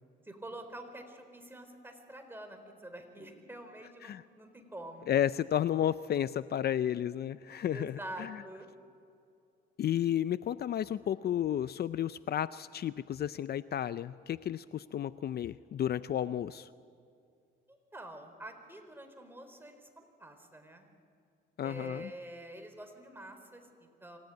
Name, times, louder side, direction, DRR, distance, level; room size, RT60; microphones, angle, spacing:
voice 1, 0.2-5.1 7.7-8.7 17.7-20.9 21.6-24.2, right 1 dB, 10° right, 5 dB, 4.1 m, -47 dB
voice 2, 5.1-8.4 9.8-16.7 21.6-22.1, left 10 dB, 55° left, 15 dB, 0.5 m, -32 dB
26.5 x 17.0 x 9.4 m, 2.5 s
cardioid pair, 90°, 20 cm